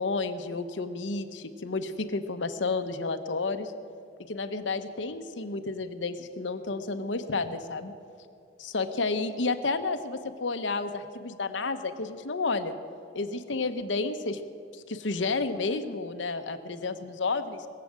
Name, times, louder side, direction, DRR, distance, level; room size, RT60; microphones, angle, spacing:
voice 1, 0.0-3.7 4.3-7.9 8.6-12.7 13.1-14.4 14.7-17.7, left 3 dB, 85° left, 9 dB, 0.9 m, -31 dB
21.0 x 7.7 x 7.5 m, 2.6 s
head